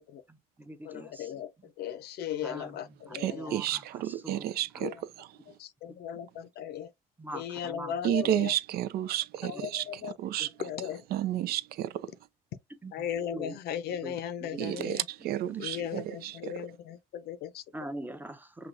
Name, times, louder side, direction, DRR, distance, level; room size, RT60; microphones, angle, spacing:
voice 1, 0.3-1.3 2.4-2.7 3.1-4.5 4.7-4.8 7.2-7.9 8.4-8.5 9.5-9.6 10.4-10.5 12.8-12.9 13.3-13.6 14.0-14.1 14.4-14.9 15.2-15.4 15.7-15.9 17.7-18.7, right 1 dB, 10° right, 0.6 m, -43 dB
voice 2, 0.8-3.6 4.8-5.0 5.6-6.9 7.3-8.5 9.4-10.2 10.6-11.0 12.9-15.1 15.6-17.6, left 9 dB, 70° left, 0.6 m, -37 dB
voice 3, 3.1-5.3 8.0-9.8 10.2-10.5 11.1-12.1 14.6-16.7, right 12 dB, 65° right, 0.4 m, -31 dB
6.1 x 2.3 x 2.5 m
cardioid pair, 110°, 17 cm